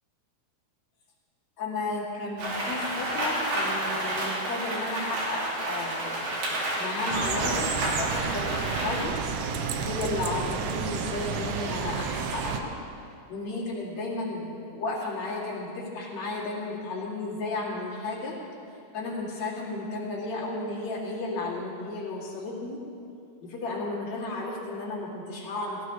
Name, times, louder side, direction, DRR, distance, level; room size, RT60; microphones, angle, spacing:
voice 1, 1.6-6.3 6.8-9.2 9.8-12.7 13.3-18.4 18.9-22.8 23.4-25.8, left 2 dB, 45° left, -6 dB, 3.5 m, -33 dB
Rain, 2.4-9.0, right 1 dB, 65° right, 3.8 m, -30 dB
sound 1, 7.1-12.6, right 6 dB, 80° right, 1.8 m, -31 dB
17.0 x 16.0 x 3.2 m, 2.6 s
omnidirectional pair, 4.6 m